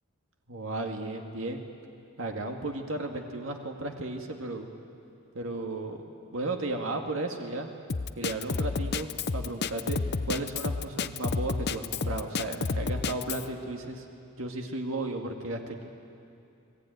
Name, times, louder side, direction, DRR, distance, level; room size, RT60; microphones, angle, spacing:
voice 1, 0.5-1.6 2.2-4.7 5.3-6.0 6.3-7.7 8.2-10.0 10.3-14.0 14.4-15.8, right 2 dB, 75° right, 3 dB, 2.1 m, -34 dB
Drum kit, 7.9-13.4, left 4 dB, 50° left, 0.7 m, -30 dB
29.5 x 20.0 x 9.4 m, 2.6 s
head